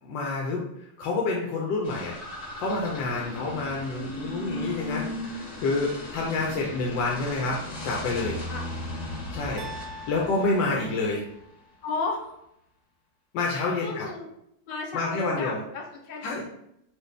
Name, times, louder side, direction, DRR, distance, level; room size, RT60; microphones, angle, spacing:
voice 1, 0.0-2.2 2.6-8.4 9.3-11.3 13.3-14.1 14.9-15.6 16.2-16.4, left 3 dB, 85° left, -2 dB, 1.3 m, -28 dB
sound 1, 1.8-11.4, left 1 dB, 15° left, 1.4 m, -37 dB
sound 2, 9.6-11.7, equal, 75° right, 0.7 m, -44 dB
voice 2, 11.8-12.4 13.8-14.3 14.7-16.4, left 3 dB, 65° left, 1 dB, 0.5 m, -33 dB
4.8 x 2.4 x 3.2 m, 0.78 s
omnidirectional pair, 1.9 m